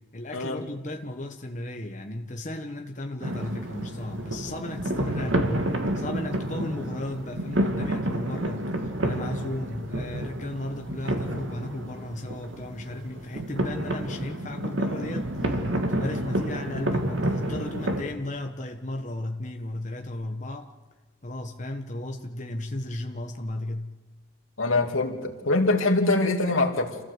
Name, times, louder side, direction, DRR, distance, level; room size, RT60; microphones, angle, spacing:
voice 1, 0.1-20.7 21.2-23.9, left 1 dB, 35° left, 4 dB, 1.3 m, -35 dB
sound 1, 3.2-18.0, right 1 dB, 75° right, 2.4 m, -29 dB
voice 2, 24.6-27.0, left 2 dB, 90° left, 4 dB, 2.8 m, -24 dB
28.0 x 15.5 x 8.3 m, 1.2 s
head